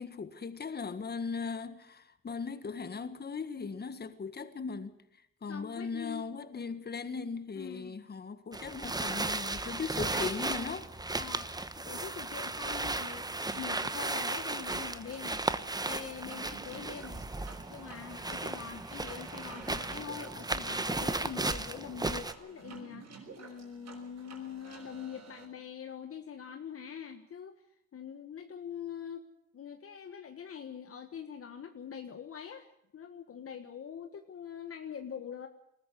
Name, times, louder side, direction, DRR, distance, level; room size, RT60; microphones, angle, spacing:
voice 1, 0.0-5.0 5.4-10.9, left 5 dB, 35° left, 1.6 m, -38 dB
voice 2, 5.5-6.2 7.6-8.0 11.1-15.4 15.8-17.3 17.7-23.0 23.4-27.6 27.9-29.3 29.5-32.7 32.9-35.5, left 8 dB, 50° left, 1.5 m, -44 dB
sound 1, 8.5-22.3, right 2 dB, 15° right, 1.1 m, -35 dB
sound 2, 12.6-25.5, right 5 dB, 60° right, 6.2 m, -51 dB
20.0 x 14.0 x 9.6 m
cardioid pair, 90°, 30 cm